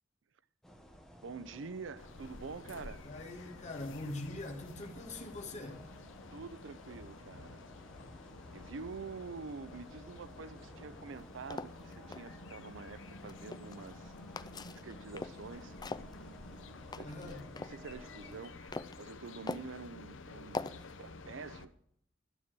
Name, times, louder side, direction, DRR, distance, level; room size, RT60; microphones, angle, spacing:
sound 1, 0.6-18.4, equal, 5° left, 1.3 m, -56 dB
voice 1, 1.2-3.0 6.3-7.6 8.5-14.1 14.8-15.8 17.0-21.7, right 4 dB, 75° right, 0.6 m, -47 dB
sound 2, 2.0-21.7, left 3 dB, 85° left, 0.8 m, -51 dB
voice 2, 3.0-5.8 17.0-17.5, left 2 dB, 40° left, 1.8 m, -43 dB
sound 3, 11.1-12.2 13.1-14.0 14.4-15.5 15.8-17.8 18.2-19.0 19.5-19.8 20.5-20.9, left 3 dB, 20° left, 0.4 m, -42 dB
12.5 x 7.4 x 6.1 m
head